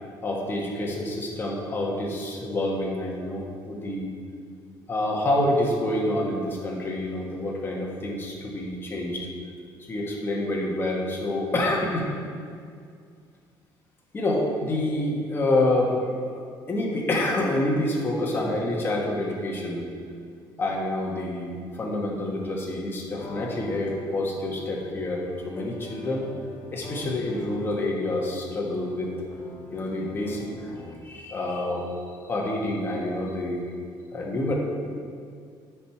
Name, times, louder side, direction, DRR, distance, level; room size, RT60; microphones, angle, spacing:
voice 1, 0.2-4.1 4.9-9.3 9.9-12.1 14.1-19.9 20.6-26.3 26.7-29.1 29.7-30.5 31.0-33.6 34.1-34.5, left 1 dB, 25° left, -2 dB, 1.3 m, -27 dB
sound 1, 23.1-31.2, left 1 dB, 45° left, 1.1 m, -44 dB
9.3 x 4.7 x 4.4 m, 2.2 s
cardioid pair, 135°, 9 cm